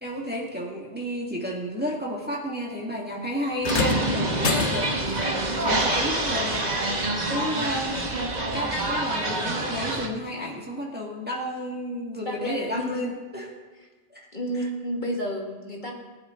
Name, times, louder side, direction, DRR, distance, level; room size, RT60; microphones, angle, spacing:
voice 1, 0.0-13.5 14.1-14.3, equal, 10° right, -3 dB, 2.0 m, -32 dB
sound 1, 3.6-5.2 6.6-6.8 7.7-7.8, left 6 dB, 80° left, 1.2 m, -29 dB
sound 2, 3.6-10.1, right 2 dB, 40° right, 1.6 m, -26 dB
voice 2, 6.9-7.4 12.3-13.0 14.3-15.9, equal, 40° left, -1 dB, 2.3 m, -31 dB
21.5 x 11.0 x 3.9 m, 1.3 s
omnidirectional pair, 1.2 m